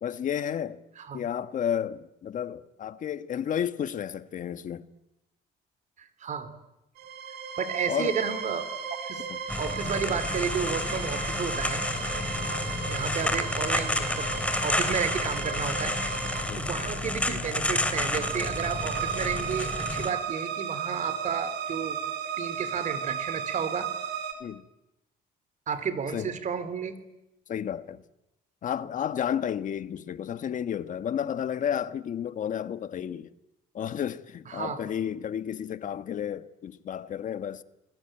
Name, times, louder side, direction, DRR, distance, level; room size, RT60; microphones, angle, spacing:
voice 1, 0.0-0.8 1.1-4.8 7.9-8.2 9.3-9.4 12.4-12.5 16.5-16.7 24.4-24.6 26.1-26.3 27.5-28.0 28.6-33.3 33.7-37.6, left 9 dB, 50° left, 1.4 m, -32 dB
voice 2, 6.0-6.5 7.6-8.7 9.0-9.2 9.6-11.8 12.9-14.3 14.6-22.0 22.4-23.9 25.7-27.0 34.5-34.8, right 6 dB, 45° right, 3.5 m, -32 dB
sound 1, 7.0-24.3, right 7 dB, 80° right, 4.3 m, -35 dB
sound 2, 9.5-20.1, left 2 dB, 5° left, 3.1 m, -30 dB
29.0 x 21.5 x 9.0 m
cardioid pair, 110°, 17 cm